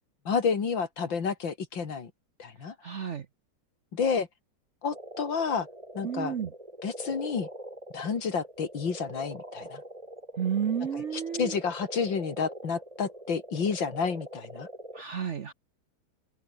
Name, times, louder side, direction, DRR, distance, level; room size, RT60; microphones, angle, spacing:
voice 1, 0.2-2.1 2.4-2.7 3.9-4.3 4.8-5.7 5.9-6.3 6.8-7.5 7.9-9.8 10.9-14.7, left 5 dB, 65° left, 3.1 m, -30 dB
voice 2, 2.8-3.3 6.0-6.5 10.4-11.5 14.9-15.5, right 8 dB, 55° right, 0.8 m, -31 dB
sound 1, 4.9-15.0, right 1 dB, 15° right, 7.9 m, -43 dB
open air
omnidirectional pair, 2.3 m